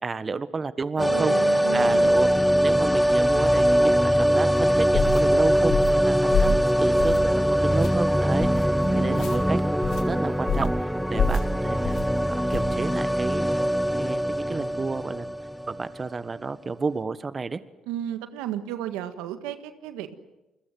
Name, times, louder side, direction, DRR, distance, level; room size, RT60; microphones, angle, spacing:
voice 1, 0.0-1.3 1.7-2.3 2.6-9.6 10.1-12.0 12.3-13.4 13.9-15.2 15.7-17.6, right 4 dB, 35° right, 13 dB, 1.3 m, -31 dB
sound 1, 1.0-15.9 16.1-16.2, equal, ahead, 1.3 m, -22 dB
voice 2, 1.0-2.2 8.8-9.5 17.9-20.1, right 11 dB, 85° right, 9 dB, 1.6 m, -34 dB
sound 2, 4.9-5.2 5.7-6.0 6.3-6.6 7.0-7.3 7.7-7.9 8.4-8.6 9.1-9.4 9.8-10.0 10.5-10.8 11.1-11.5 11.8-12.1 12.5-12.7, left 3 dB, 65° left, 4.2 m, -26 dB
29.5 x 21.5 x 7.8 m, 0.99 s
supercardioid pair, 60°, 0 cm